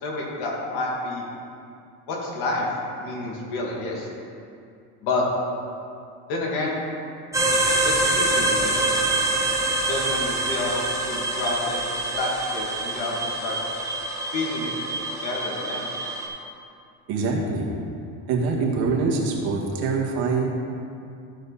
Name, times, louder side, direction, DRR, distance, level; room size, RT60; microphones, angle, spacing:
voice 1, 0.0-1.2 2.1-2.7 3.0-4.1 5.0-5.2 6.3-6.8 7.8-8.9 9.9-11.8 12.1-13.6 14.3-14.7 15.1-15.9, left 2 dB, 70° left, -3 dB, 2.3 m, -29 dB
sound 1, 7.3-16.3, right 2 dB, 10° right, 1.2 m, -25 dB
voice 2, 17.1-17.7 18.3-20.5, right 4 dB, 70° right, -2 dB, 1.9 m, -24 dB
13.5 x 5.0 x 4.2 m, 2.4 s
cardioid pair, 130°, 39 cm